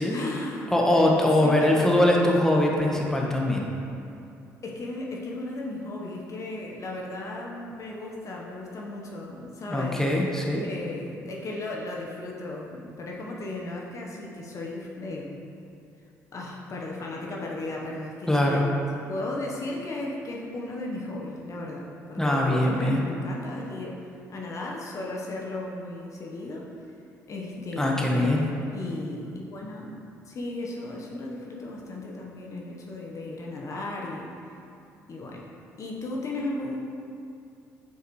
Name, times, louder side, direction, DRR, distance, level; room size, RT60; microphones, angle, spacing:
voice 1, 0.1-2.0 4.6-10.0 10.6-15.4 16.3-18.7 19.1-24.0 24.3-26.7 27.3-28.3 28.7-30.0 30.3-34.3 35.1-35.5 35.8-36.8, left 2 dB, 45° left, -2 dB, 1.0 m, -35 dB
voice 2, 0.7-3.7 9.7-10.6 18.3-18.7 22.2-23.0 27.8-28.4, left 1 dB, 5° left, -2 dB, 1.1 m, -22 dB
8.2 x 4.6 x 3.1 m, 2.6 s
hypercardioid pair, 60°, 7 cm